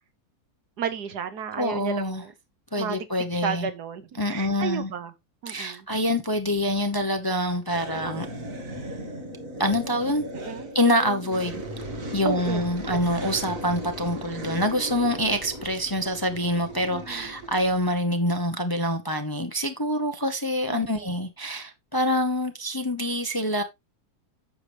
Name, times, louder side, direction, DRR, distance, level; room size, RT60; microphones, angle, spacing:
voice 1, 0.8-2.3 2.8-3.1 3.3-5.1 5.4-5.9 10.3-10.7 12.2-13.0 16.9-17.3 20.7-21.1, right 7 dB, 85° right, 1.7 m, -33 dB
voice 2, 1.6-2.2 2.7-3.7 4.2-4.9 5.5-8.3 9.6-10.3 10.7-11.6 12.1-23.6, equal, 20° left, 0.6 m, -26 dB
sound 1, 7.7-18.0, right 1 dB, 55° right, 2.5 m, -37 dB
9.6 x 6.9 x 3.3 m
omnidirectional pair, 1.7 m